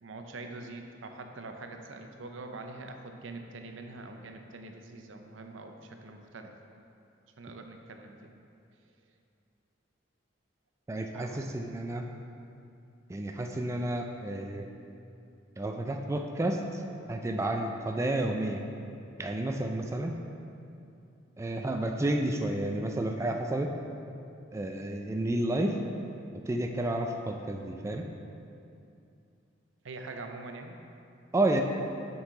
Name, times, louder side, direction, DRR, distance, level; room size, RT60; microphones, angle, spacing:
voice 1, 0.0-6.5 7.4-8.3 11.1-11.6 29.8-30.8, right 3 dB, 80° right, 5 dB, 0.6 m, -44 dB
voice 2, 10.9-12.1 13.1-14.7 15.6-16.8 17.1-18.6 19.2-20.2 21.4-23.7 24.5-25.8 26.5-28.1 31.3-31.6, right 1 dB, 15° right, 3 dB, 0.3 m, -31 dB
7.2 x 5.5 x 3.8 m, 2.6 s
head